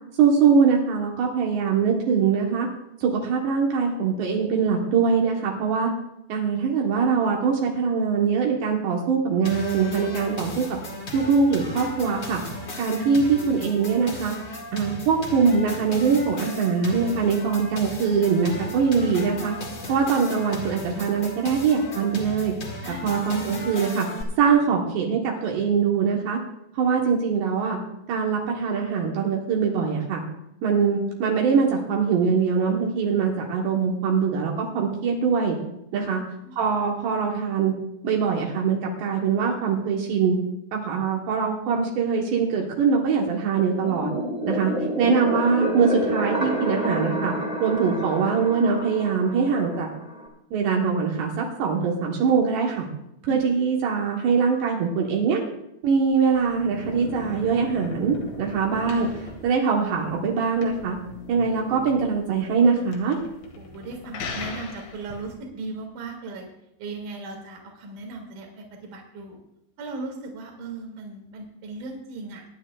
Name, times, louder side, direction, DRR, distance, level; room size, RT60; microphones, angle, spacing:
voice 1, 0.2-2.7 3.0-5.9 6.3-10.8 11.1-12.4 12.8-19.5 19.9-22.5 23.0-24.1 24.4-26.4 26.8-27.8 28.1-30.2 30.6-35.6 35.9-36.2 36.6-37.7 38.0-40.4 40.7-44.1 44.5-47.3 47.6-49.9 50.5-52.9 53.2-55.4 55.8-61.0 61.3-63.2, right 5 dB, 75° right, -1 dB, 3.3 m, -23 dB
sound 1, 9.4-24.2, left 2 dB, 50° left, 1.2 m, -36 dB
sound 2, 43.7-50.3, right 1 dB, 20° right, 1.3 m, -29 dB
sound 3, 56.1-65.3, left 3 dB, 85° left, 4.1 m, -39 dB
voice 2, 63.6-66.5 66.8-69.4 69.8-72.5, right 3 dB, 50° right, 2 dB, 3.2 m, -37 dB
24.0 x 9.9 x 2.3 m, 0.83 s
omnidirectional pair, 5.0 m